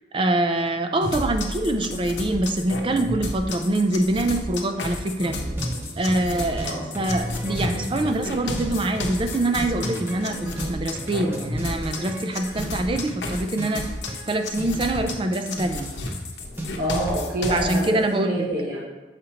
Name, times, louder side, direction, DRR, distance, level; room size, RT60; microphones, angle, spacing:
voice 1, 0.1-5.3 6.0-13.9 14.3-15.9 17.5-18.4, right 2 dB, 30° right, 6 dB, 0.4 m, -24 dB
sound 1, 1.0-5.6, equal, 85° right, 1.9 m, -38 dB
sound 2, 1.1-17.9, left 2 dB, 85° left, 0.8 m, -32 dB
sound 3, 5.2-17.3, right 1 dB, 15° right, 0.8 m, -34 dB
voice 2, 16.8-18.8, right 1 dB, 50° right, -7 dB, 1.1 m, -26 dB
7.2 x 5.0 x 2.9 m, 1.2 s
head